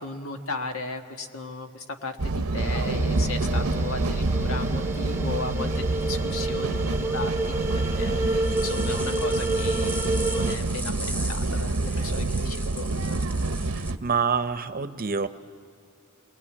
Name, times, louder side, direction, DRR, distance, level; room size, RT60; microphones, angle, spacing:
voice 1, 0.0-13.2, left 3 dB, 80° left, 5 dB, 1.5 m, -36 dB
sound 1, 2.2-14.0, right 2 dB, 90° right, 0.8 m, -28 dB
sound 2, 2.6-10.6, right 2 dB, 10° right, 0.9 m, -29 dB
sound 3, 8.4-13.9, right 1 dB, 10° left, 1.2 m, -38 dB
voice 2, 13.8-15.3, right 5 dB, 45° right, 11 dB, 0.8 m, -26 dB
27.5 x 20.5 x 8.6 m, 2.5 s
head